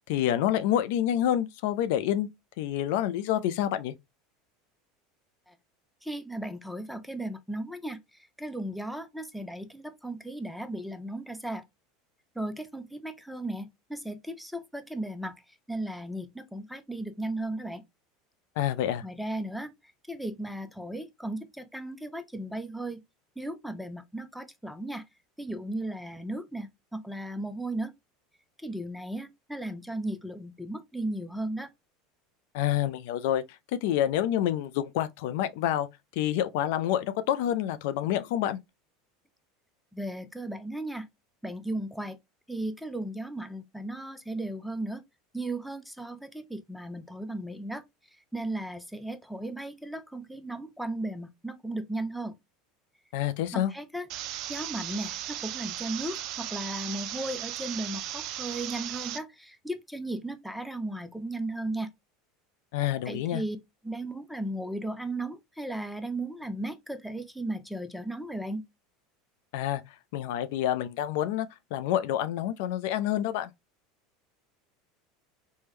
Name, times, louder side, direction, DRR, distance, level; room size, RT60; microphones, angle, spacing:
voice 1, 0.1-2.3 2.6-3.9 18.6-19.0 32.5-33.4 33.8-35.9 36.2-38.6 53.1-53.7 62.7-63.4 69.5-69.8 70.1-73.5, left 11 dB, 70° left, 0.3 m, -28 dB
voice 2, 6.0-8.0 8.4-11.6 12.4-15.3 15.7-17.8 19.0-19.7 20.1-23.0 23.4-25.0 25.4-27.9 28.6-31.7 39.9-41.1 41.4-42.2 42.5-45.0 45.3-47.8 48.3-52.3 53.5-54.1 54.5-61.9 63.1-63.6 63.8-68.6, right 1 dB, ahead, 0.5 m, -36 dB
sound 1, 54.1-59.2, right 13 dB, 55° right, 0.3 m, -36 dB
3.4 x 2.1 x 3.0 m
hypercardioid pair, 100°, 0 cm